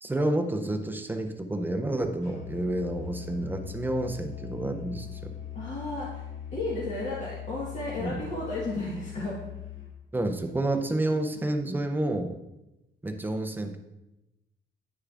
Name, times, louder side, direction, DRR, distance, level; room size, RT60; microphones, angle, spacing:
voice 1, 0.0-5.3 8.0-8.2 10.1-12.3 13.0-13.8, right 1 dB, 10° right, 5 dB, 0.5 m, -29 dB
Musical instrument, 2.2-10.0, left 9 dB, 75° left, 1.5 m, -41 dB
voice 2, 5.5-6.2 6.5-9.4, left 2 dB, 40° left, -6 dB, 1.4 m, -33 dB
9.4 x 6.5 x 2.4 m, 0.95 s
cardioid pair, 145°, 20 cm